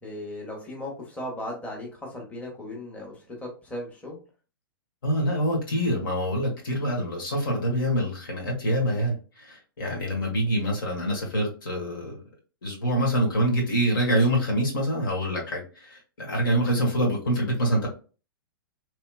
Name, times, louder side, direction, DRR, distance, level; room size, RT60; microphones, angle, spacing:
voice 1, 0.0-4.2 10.0-10.3, left 1 dB, 10° left, -3 dB, 1.2 m, -37 dB
voice 2, 5.0-12.2 12.6-17.9, equal, 70° left, -1 dB, 1.5 m, -25 dB
3.1 x 2.8 x 2.2 m, 0.35 s
figure-of-eight pair, 110°, 12 cm